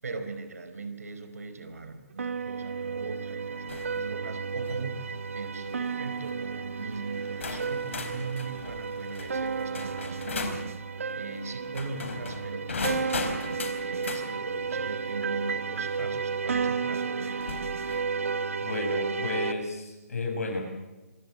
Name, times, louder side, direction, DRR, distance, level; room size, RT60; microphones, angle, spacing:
voice 1, 0.0-10.9 11.1-13.3 13.8-17.6, right 3 dB, 75° right, 9 dB, 4.6 m, -39 dB
sound 1, 2.2-19.5, right 5 dB, 60° right, 1.6 m, -32 dB
sound 2, 3.7-4.0 4.5-4.8 5.7-5.9 6.8-6.9 7.4-10.7 11.6-14.3 16.0-16.1 17.4-18.1, left 4 dB, 55° left, 3.9 m, -37 dB
voice 2, 18.6-20.6, left 3 dB, 75° left, 2 dB, 7.7 m, -32 dB
26.0 x 15.5 x 8.8 m, 1.1 s
hypercardioid pair, 180°, 8 cm